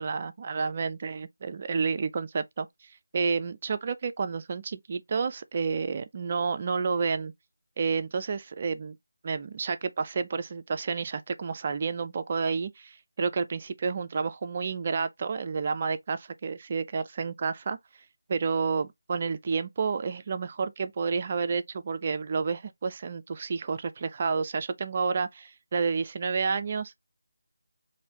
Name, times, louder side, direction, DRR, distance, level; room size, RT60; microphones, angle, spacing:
voice 1, 0.0-2.7 3.1-7.3 7.8-9.0 9.2-17.8 18.3-27.0, right 5 dB, 35° right, 0.3 m, -30 dB
3.2 x 2.5 x 2.8 m
figure-of-eight pair, 165°, 0 cm